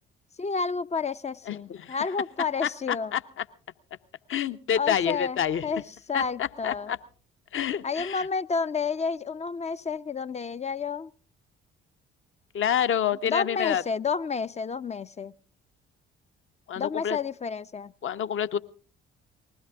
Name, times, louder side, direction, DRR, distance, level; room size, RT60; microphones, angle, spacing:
voice 1, 0.4-3.2 4.8-5.8 6.1-6.9 7.8-11.1 13.2-15.3 16.8-17.9, left 5 dB, 20° left, 14 dB, 0.6 m, -30 dB
voice 2, 1.5-2.0 2.6-3.2 4.3-5.7 6.1-7.0 7.5-8.3 12.5-13.8 16.7-17.2 18.0-18.6, left 9 dB, 40° left, 12 dB, 1.0 m, -28 dB
20.5 x 16.0 x 3.6 m, 0.42 s
figure-of-eight pair, 45°, 31 cm